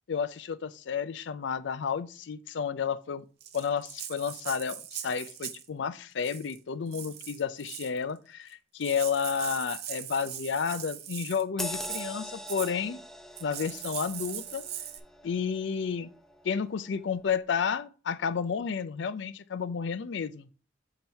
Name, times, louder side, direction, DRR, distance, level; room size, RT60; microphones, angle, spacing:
voice 1, 0.1-3.3 3.5-13.0 13.4-14.6 15.2-16.1 16.4-20.5, left 6 dB, 70° left, 0.4 m, -31 dB
Rattle (instrument), 3.4-5.7 6.2-6.6 6.9-8.0 8.5-8.6 8.8-11.4 11.8-12.1 12.5-12.7 13.4-15.0, right 10 dB, 55° right, 0.6 m, -40 dB
sound 1, 11.6-16.5 17.0-17.2, equal, ahead, 0.4 m, -42 dB
7.2 x 3.0 x 5.3 m
head